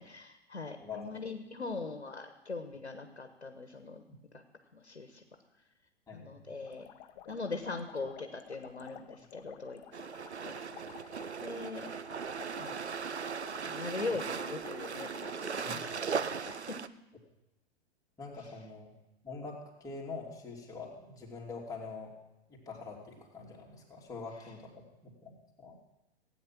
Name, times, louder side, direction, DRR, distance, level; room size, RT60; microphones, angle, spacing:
voice 1, 0.0-4.0 4.3-4.4 4.7-5.2 6.1-6.9 7.3-9.8 10.4-10.5 11.4-11.9 12.5-12.9 13.6-16.8, left 3 dB, 85° left, 7 dB, 1.3 m, -41 dB
voice 2, 0.8-1.2 6.1-6.5 15.6-15.9 18.2-18.9 19.2-22.1 22.5-24.7 25.0-25.8, left 4 dB, 10° left, -3 dB, 3.1 m, -44 dB
sound 1, 6.6-16.6, left 11 dB, 40° left, 1.0 m, -53 dB
sound 2, 9.9-16.9, right 6 dB, 90° right, 0.6 m, -38 dB
16.5 x 9.2 x 6.0 m, 0.94 s
figure-of-eight pair, 100°, 32 cm